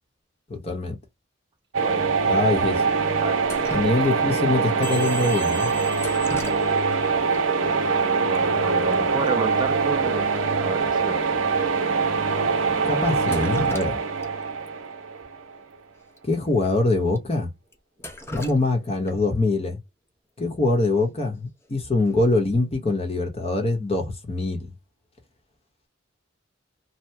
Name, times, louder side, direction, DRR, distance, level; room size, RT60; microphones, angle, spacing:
voice 1, 0.5-1.0 2.3-2.8 3.7-5.7 12.8-14.0 16.2-17.5 18.3-19.8 20.4-24.7, left 2 dB, 30° left, 1.0 m, -24 dB
sound 1, 1.7-15.6, right 5 dB, 80° right, 0.7 m, -23 dB
voice 2, 1.8-2.7 3.2-4.1 7.5-11.4, right 4 dB, 25° right, 0.3 m, -33 dB
Drip, 3.4-4.4 6.0-7.0 7.3-7.4 8.3-8.4 8.7-8.9 9.3-9.4 9.8-9.9 10.3-10.4 11.0-11.1 11.8-11.9 13.1-14.3 14.7-14.8 16.1-16.2 16.6-16.7 17.2-17.3 17.7-19.3 21.3-21.6 22.1-22.4, left 1 dB, 15° left, 0.6 m, -38 dB
sound 2, 4.8-7.4, left 3 dB, 60° left, 1.1 m, -39 dB
2.8 x 2.1 x 3.3 m
head